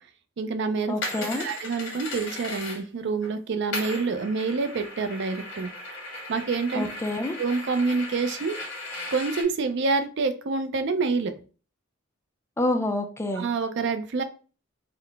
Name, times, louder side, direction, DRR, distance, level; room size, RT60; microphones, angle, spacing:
voice 1, 0.4-5.7 6.3-6.9 7.4-8.6 9.1-11.3 13.4-14.2, right 4 dB, 60° right, 9 dB, 0.4 m, -27 dB
voice 2, 0.9-1.5 6.7-7.4 12.6-13.5, left 1 dB, 15° left, 6 dB, 0.4 m, -27 dB
sound 1, 1.0-3.3 3.7-9.4, left 2 dB, 65° left, 1.2 m, -36 dB
3.8 x 2.1 x 3.4 m, 0.36 s
head